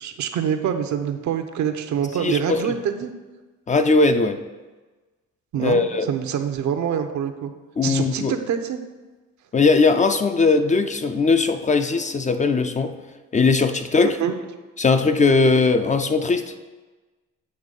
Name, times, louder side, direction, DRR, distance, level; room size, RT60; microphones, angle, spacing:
voice 1, 0.0-3.1 5.5-7.5 7.8-8.8 14.0-14.3, right 8 dB, 70° right, 7 dB, 0.7 m, -25 dB
voice 2, 2.2-2.7 3.7-4.4 5.6-6.1 7.8-8.4 9.5-13.0 13.3-14.2 14.8-16.4, left 4 dB, 25° left, 8 dB, 0.4 m, -19 dB
7.9 x 3.1 x 5.2 m, 1.2 s
cardioid pair, 90°, 30 cm